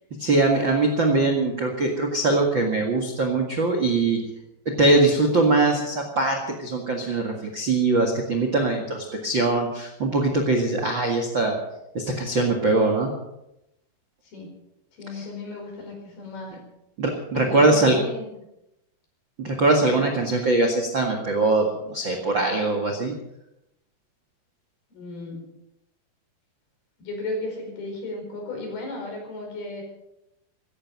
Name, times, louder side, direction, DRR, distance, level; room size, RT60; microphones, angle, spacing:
voice 1, 0.2-4.2 4.6-11.5 11.9-13.1 15.1-15.2 17.0-18.0 19.4-23.1, right 2 dB, 45° right, 3 dB, 1.5 m, -22 dB
voice 2, 14.9-16.6 17.3-18.3 19.8-20.0 24.9-25.4 27.0-29.8, left 2 dB, 60° left, 2 dB, 6.6 m, -35 dB
16.0 x 15.5 x 5.4 m, 0.87 s
omnidirectional pair, 5.1 m